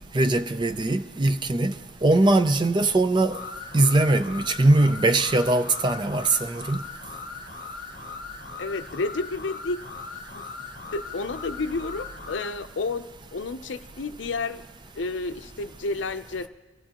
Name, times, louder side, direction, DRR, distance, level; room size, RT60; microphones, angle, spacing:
voice 1, 0.1-1.7 2.0-3.4 3.7-6.8, right 2 dB, 25° right, 0.4 m, -21 dB
sound 1, 3.3-12.6, left 4 dB, 45° left, 0.9 m, -39 dB
voice 2, 8.6-9.8 10.3-10.4 10.9-14.6 15.0-16.5, left 3 dB, 70° left, 0.6 m, -31 dB
24.5 x 15.0 x 2.9 m
head